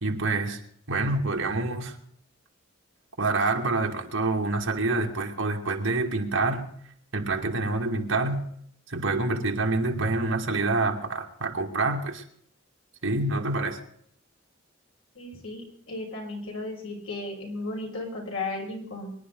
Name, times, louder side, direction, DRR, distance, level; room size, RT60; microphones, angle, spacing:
voice 1, 0.0-0.6 0.9-1.9 3.2-6.7 7.1-8.5 8.9-12.2 13.0-13.8, right 2 dB, 70° right, 1 dB, 2.4 m, -27 dB
voice 2, 15.2-19.1, left 2 dB, 80° left, -1 dB, 5.5 m, -35 dB
24.0 x 11.0 x 4.0 m, 0.66 s
head